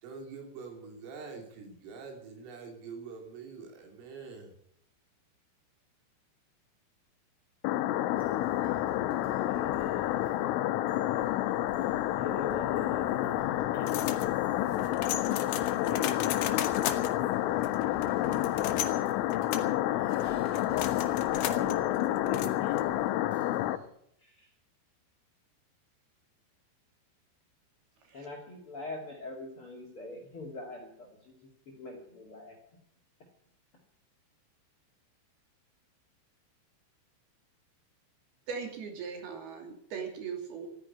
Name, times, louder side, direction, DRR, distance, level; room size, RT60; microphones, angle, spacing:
voice 1, 0.0-4.5, right 5 dB, 90° right, 2 dB, 5.7 m, -45 dB
sound 1, 7.6-23.8, left 14 dB, 85° left, 3.3 m, -29 dB
sound 2, 8.1-23.9, equal, 5° right, 3.8 m, -52 dB
voice 2, 9.5-10.4 10.8-11.4 12.2-13.9 14.6-15.1 15.8-17.8 20.9-21.9 22.1-23.3 24.2-24.5 28.1-32.6, left 2 dB, 40° left, 1 dB, 2.3 m, -45 dB
sound 3, 13.9-23.1, left 10 dB, 70° left, 2.7 m, -38 dB
voice 3, 38.5-40.7, right 6 dB, 55° right, 4 dB, 4.2 m, -39 dB
14.0 x 9.9 x 9.6 m, 0.72 s
omnidirectional pair, 5.6 m